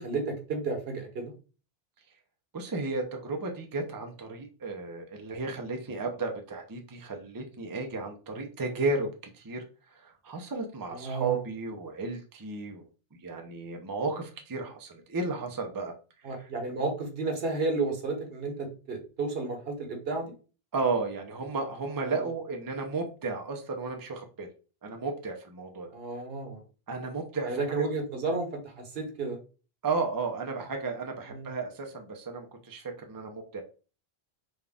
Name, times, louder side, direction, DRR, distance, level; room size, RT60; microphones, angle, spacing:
voice 1, 0.0-1.3 10.9-11.4 16.2-20.3 22.0-22.3 25.9-26.6 27.4-29.4 31.3-31.5, right 3 dB, 70° right, 3 dB, 1.2 m, -32 dB
voice 2, 2.5-9.6 9.9-12.8 13.1-15.9 16.2-16.3 20.7-24.5 24.8-25.9 26.9-27.8 29.8-33.6, right 3 dB, 25° right, 4 dB, 0.5 m, -33 dB
3.9 x 2.3 x 3.4 m, 0.35 s
omnidirectional pair, 1.1 m